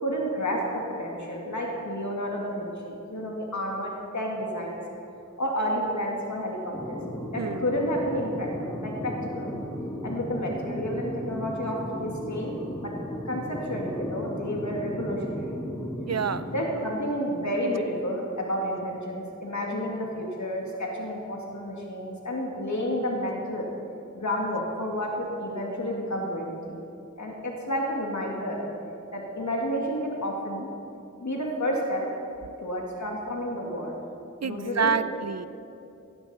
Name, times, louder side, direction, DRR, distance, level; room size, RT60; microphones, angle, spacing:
voice 1, 0.0-4.8 5.4-7.0 7.3-8.5 8.8-9.5 10.0-12.9 13.2-15.5 16.5-23.7 24.1-26.8 27.2-28.6 29.1-30.7 31.2-32.0 32.6-33.9 34.4-35.0, equal, 70° left, -1 dB, 2.3 m, -30 dB
sound 1, 6.7-16.6, equal, 10° left, 2.0 m, -35 dB
voice 2, 16.1-16.5 34.4-35.5, right 5 dB, 55° right, 13 dB, 0.6 m, -27 dB
16.5 x 15.0 x 4.4 m, 2.7 s
wide cardioid pair, 60°, 31 cm